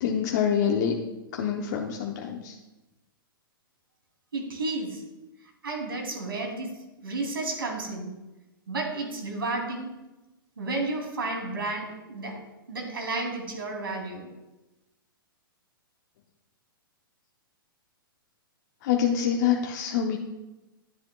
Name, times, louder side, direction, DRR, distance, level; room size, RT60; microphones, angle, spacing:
voice 1, 0.0-0.9 1.3-2.6 18.8-20.2, left 8 dB, 50° left, 2 dB, 0.8 m, -26 dB
voice 2, 4.3-5.0 5.6-6.7 7.0-8.1 8.7-9.9 10.6-12.4 12.7-14.3, right 2 dB, 75° right, 1 dB, 2.9 m, -32 dB
11.0 x 10.5 x 2.3 m, 1.1 s
figure-of-eight pair, 115°, 12 cm